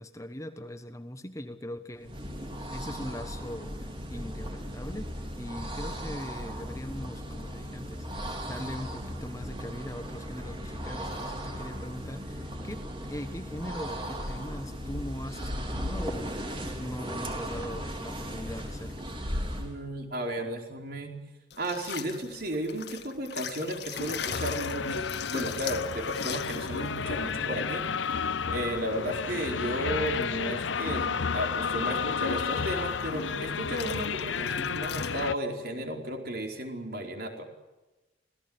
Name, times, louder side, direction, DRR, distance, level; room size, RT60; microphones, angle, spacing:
voice 1, 0.0-2.2 2.7-16.4 16.8-19.0, left 1 dB, 15° left, 9 dB, 1.2 m, -41 dB
sound 1, 2.0-19.8, equal, 30° right, 3.9 m, -37 dB
voice 2, 19.5-21.1 21.6-27.8 28.5-37.5, right 1 dB, 55° right, 3 dB, 4.7 m, -34 dB
sound 2, 21.5-35.3, left 8 dB, 60° left, 1.8 m, -42 dB
sound 3, 23.9-35.3, left 5 dB, 85° left, 0.7 m, -32 dB
26.5 x 18.0 x 8.9 m, 1.1 s
head